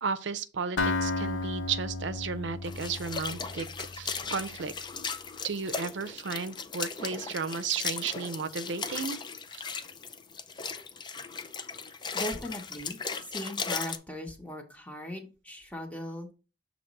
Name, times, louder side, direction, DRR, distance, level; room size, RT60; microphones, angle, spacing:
voice 1, 0.0-3.7 4.0-4.7 5.4-9.2 9.5-9.6, right 5 dB, 75° right, 0.6 m, -34 dB
Acoustic guitar, 0.8-4.6, left 3 dB, 90° left, 0.8 m, -33 dB
sound 1, 2.6-14.0, left 5 dB, 25° left, 0.4 m, -37 dB
voice 2, 12.1-16.3, equal, 10° left, 1.0 m, -39 dB
7.2 x 3.0 x 5.2 m
head